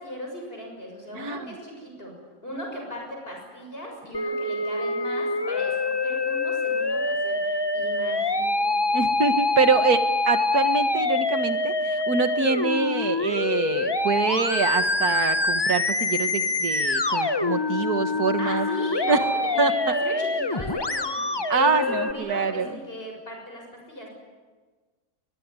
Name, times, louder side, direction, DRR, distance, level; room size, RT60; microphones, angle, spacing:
voice 1, 0.0-2.1 2.4-9.0 18.4-24.1, equal, 40° left, 1 dB, 6.9 m, -37 dB
voice 2, 1.2-1.5 8.9-18.7 19.1-19.2 19.6-19.9 21.5-22.7, right 5 dB, 80° right, 8 dB, 2.0 m, -25 dB
Musical instrument, 4.1-22.1, left 2 dB, 20° left, 0.8 m, -25 dB
22.0 x 21.5 x 9.7 m, 1.4 s
omnidirectional pair, 1.6 m